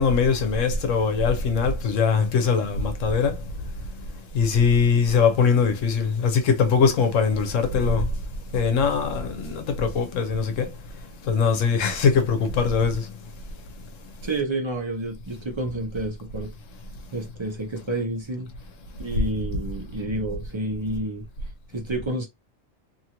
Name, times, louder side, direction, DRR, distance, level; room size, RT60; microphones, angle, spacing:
voice 1, 0.0-3.3 4.3-8.1 8.5-10.7 11.3-13.0, left 5 dB, 75° left, 1.1 m, -21 dB
voice 2, 14.2-16.5 17.1-18.5 19.0-21.3 21.7-22.3, right 2 dB, 30° right, 0.6 m, -29 dB
2.8 x 2.5 x 2.9 m
omnidirectional pair, 1.3 m